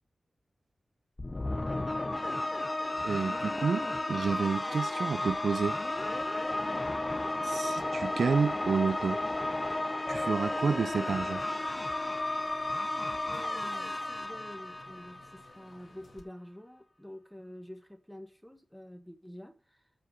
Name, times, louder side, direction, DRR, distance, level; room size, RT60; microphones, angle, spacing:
sound 1, 1.2-15.6, left 2 dB, 25° left, 0.5 m, -33 dB
voice 1, 3.0-5.8 7.4-9.2 10.1-11.4, right 5 dB, 75° right, 0.4 m, -30 dB
sound 2, 5.0-10.1, right 2 dB, 35° right, 1.5 m, -55 dB
voice 2, 6.6-7.0 13.3-20.0, left 1 dB, 5° left, 1.3 m, -48 dB
sound 3, 10.6-16.2, left 2 dB, 65° left, 1.9 m, -58 dB
7.7 x 5.9 x 5.7 m
wide cardioid pair, 120°, 0 cm